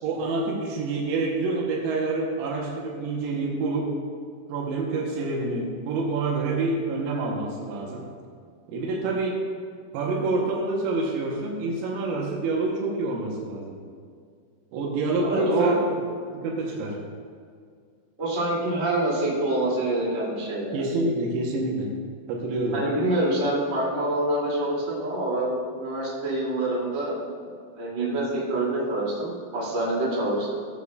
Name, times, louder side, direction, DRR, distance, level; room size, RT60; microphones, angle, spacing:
voice 1, 0.0-4.0 4.5-8.1 8.7-9.5 9.9-13.8 14.7-15.8 16.3-17.0 20.7-22.0 22.3-22.9, right 3 dB, 90° right, -2 dB, 3.8 m, -27 dB
voice 2, 15.2-15.8 18.2-20.8 22.7-30.5, right 1 dB, 30° right, -8 dB, 1.3 m, -26 dB
15.5 x 8.1 x 2.4 m, 2.1 s
omnidirectional pair, 5.8 m